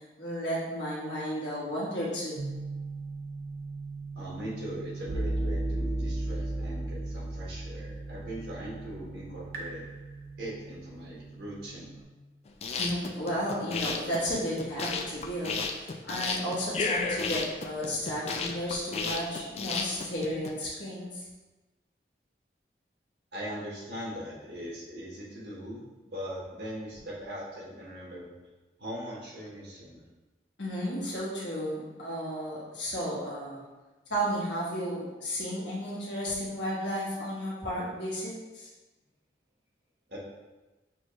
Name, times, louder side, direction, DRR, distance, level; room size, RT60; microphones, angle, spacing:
voice 1, 0.0-2.5 12.8-21.2 30.6-33.6 34.1-38.7, equal, 85° left, -6 dB, 1.5 m, -33 dB
sound 1, 2.4-12.0, right 2 dB, 55° right, 0.7 m, -36 dB
voice 2, 4.1-9.8 10.4-11.9 23.3-25.8 26.1-28.3 28.8-30.0 40.1-40.2, equal, 70° right, -6 dB, 1.4 m, -40 dB
sound 2, 12.5-20.5, left 4 dB, 35° left, 0.3 m, -33 dB
6.0 x 2.4 x 3.1 m, 1.2 s
head